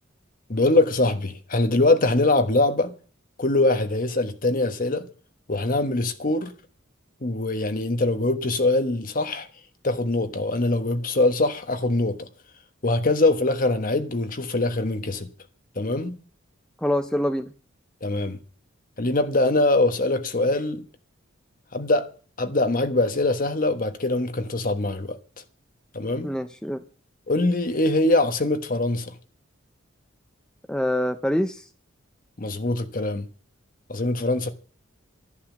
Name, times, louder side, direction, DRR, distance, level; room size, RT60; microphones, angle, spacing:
voice 1, 0.5-2.9 3.4-5.1 5.5-6.5 7.2-9.5 9.8-12.3 12.8-15.3 15.7-16.1 18.0-18.4 19.0-20.8 21.7-22.1 22.4-25.2 25.9-26.3 27.3-29.1 32.4-33.3 33.9-34.5, left 2 dB, 40° left, 1.3 m, -23 dB
voice 2, 16.8-17.5 26.2-26.8 30.7-31.6, left 1 dB, 5° left, 0.6 m, -25 dB
11.5 x 11.0 x 7.4 m
head